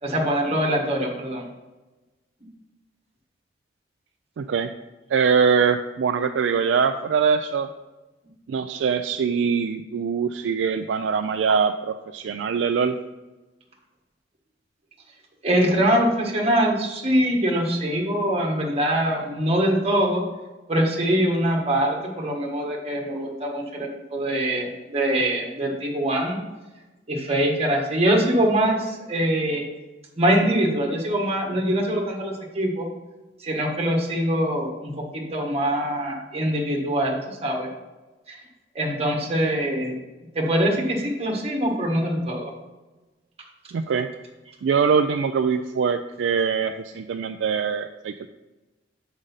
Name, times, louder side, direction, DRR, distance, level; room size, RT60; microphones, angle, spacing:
voice 1, 0.0-1.5 15.4-20.2 20.7-26.4 27.1-29.6 30.2-32.9 33.4-37.7 38.3-38.4 38.7-39.9 40.3-42.5, right 1 dB, 35° right, 0 dB, 1.5 m, -23 dB
voice 2, 4.4-4.7 5.1-7.7 8.5-13.0 43.7-44.1 44.6-48.3, right 6 dB, 80° right, 7 dB, 0.3 m, -23 dB
6.5 x 5.0 x 5.5 m, 1.1 s
head